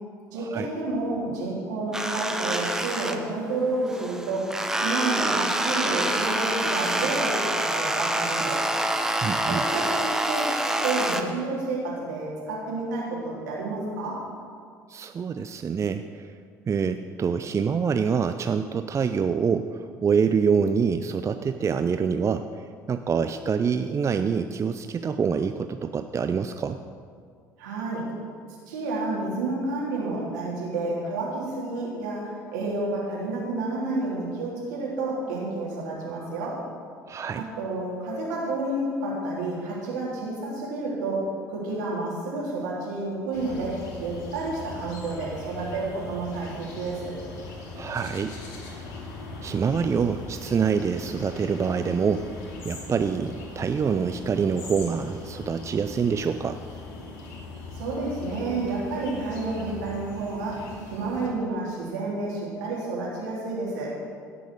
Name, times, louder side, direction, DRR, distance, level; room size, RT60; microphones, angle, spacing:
voice 1, 0.3-4.5 4.8-8.6 9.5-14.2 27.6-28.1 28.7-36.6 37.4-47.1 57.7-63.9, right 2 dB, 75° right, -5 dB, 3.6 m, -30 dB
sound 1, 1.9-3.6 3.9-11.2, right 1 dB, 5° right, 1.1 m, -26 dB
voice 2, 9.2-9.6 14.9-16.3 16.7-22.5 22.9-26.8 37.1-37.4 47.7-48.3 48.7-48.8 49.4-52.3 52.6-56.6, right 6 dB, 30° right, 9 dB, 0.5 m, -26 dB
sound 2, 43.3-61.3, left 2 dB, 65° left, 2.4 m, -40 dB
16.5 x 6.2 x 6.6 m, 2.1 s
figure-of-eight pair, 60°, 10 cm